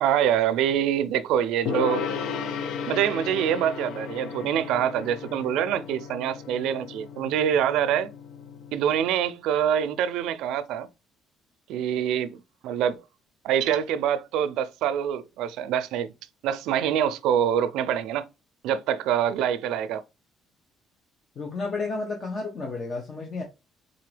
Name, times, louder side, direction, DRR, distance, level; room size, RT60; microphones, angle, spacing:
voice 1, 0.0-2.0 2.9-8.1 8.7-10.9 11.7-13.0 13.4-16.1 16.4-18.3 18.6-20.0, right 9 dB, 85° right, 0.5 m, -25 dB
Gong, 1.7-9.1, left 7 dB, 75° left, 0.6 m, -35 dB
voice 2, 21.4-23.4, left 3 dB, 40° left, 1.0 m, -31 dB
3.9 x 3.8 x 3.2 m
cardioid pair, 140°, 0 cm